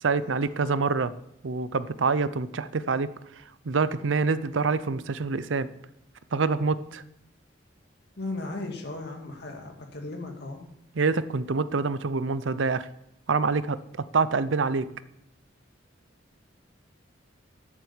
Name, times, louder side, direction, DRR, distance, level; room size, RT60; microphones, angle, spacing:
voice 1, 0.0-1.1 1.4-5.7 6.3-7.0 10.9-12.9 13.3-13.8 14.1-14.9, right 4 dB, 80° right, 15 dB, 0.6 m, -26 dB
voice 2, 8.2-10.6, left 2 dB, 60° left, 2 dB, 2.3 m, -36 dB
11.5 x 7.5 x 7.2 m, 0.80 s
head